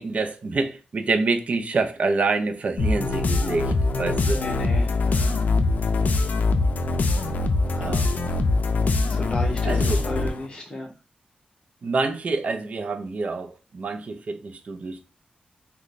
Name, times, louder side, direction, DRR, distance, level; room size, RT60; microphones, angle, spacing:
voice 1, 0.0-4.4 7.8-8.1 9.6-10.0 11.8-15.0, right 3 dB, 50° right, 0.5 m, -27 dB
sound 1, 2.8-10.5, left 3 dB, 70° left, 0.4 m, -23 dB
voice 2, 4.3-5.3 7.6-7.9 9.1-10.9, left 1 dB, 35° left, 0.9 m, -34 dB
3.1 x 2.2 x 3.9 m
wide cardioid pair, 150°, 3 cm